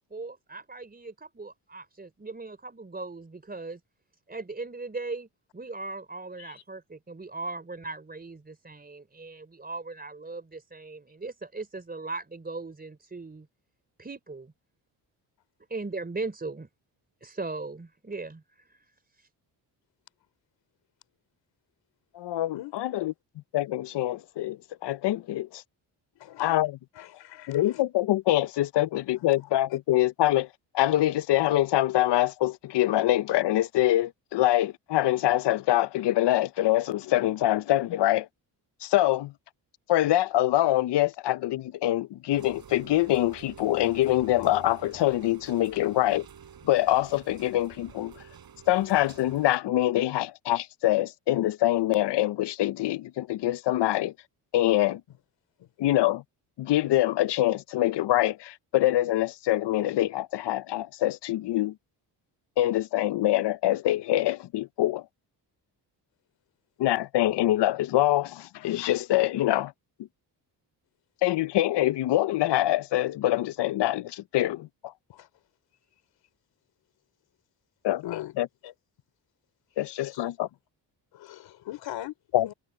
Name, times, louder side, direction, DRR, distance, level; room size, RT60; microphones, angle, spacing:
voice 1, 0.0-3.8 4.3-13.5 14.0-14.5 15.7-16.7 17.2-18.9 19.1-19.3, right 3 dB, 20° right, 4.5 m, -38 dB
voice 2, 22.1-23.1 23.5-25.6 26.4-26.8 27.5-30.5 30.7-38.3 38.8-39.3 39.9-46.2 46.6-48.1 48.7-54.1 54.5-55.0 55.8-56.2 56.6-61.7 62.6-65.0 66.8-69.7 71.2-74.9 77.8-78.0 78.4-78.5 79.8-80.5 82.3-82.5, left 14 dB, 70° left, 0.8 m, -25 dB
voice 3, 26.2-26.7 26.9-27.8 28.8-29.2 29.7-29.8 55.6-55.7 75.1-75.3 78.0-78.3 78.6-78.7 79.7-80.4 81.1-82.1 82.4-82.5, left 14 dB, 85° left, 3.9 m, -41 dB
Rain, 42.3-49.6, right 7 dB, 55° right, 6.0 m, -49 dB
cardioid pair, 90°, 43 cm